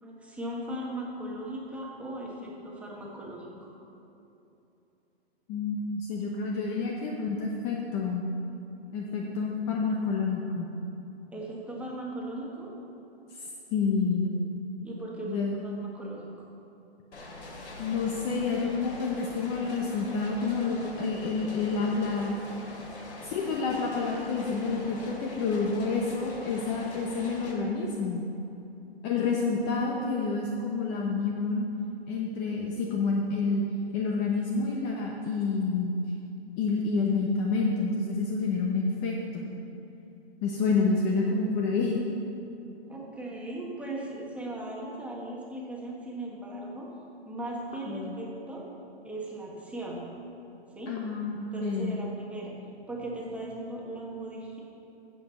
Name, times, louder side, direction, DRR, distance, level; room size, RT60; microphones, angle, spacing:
voice 1, 0.0-3.7 11.3-12.7 14.8-16.5 42.9-46.9 47.2-48.6 49.0-50.1 50.7-50.9 51.5-52.5 52.9-54.6, right 1 dB, 5° right, -3 dB, 1.4 m, -38 dB
voice 2, 5.5-8.3 8.9-10.7 13.3-14.3 15.3-15.6 17.8-22.3 23.2-28.3 29.0-31.7 32.1-33.6 33.9-36.0 36.6-39.4 40.4-42.0 47.9-48.2 50.9-52.0, left 4 dB, 25° left, -1 dB, 0.8 m, -29 dB
sound 1, 17.1-27.5, left 2 dB, 90° left, 2.9 m, -43 dB
15.5 x 5.2 x 6.9 m, 2.9 s
hypercardioid pair, 145°, 32 cm